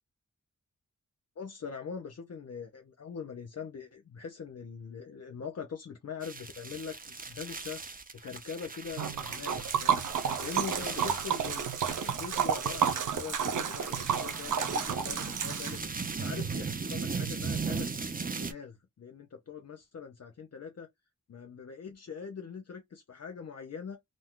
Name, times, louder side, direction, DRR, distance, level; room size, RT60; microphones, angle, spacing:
voice 1, 1.4-7.8 8.2-10.0 10.4-17.9 18.3-20.9 21.3-24.0, left 6 dB, 55° left, 0.6 m, -42 dB
sound 1, 6.2-18.5, right 5 dB, 30° right, 0.6 m, -38 dB
Liquid, 9.0-16.1, right 8 dB, 85° right, 0.6 m, -31 dB
2.6 x 2.2 x 3.6 m
wide cardioid pair, 70°, 31 cm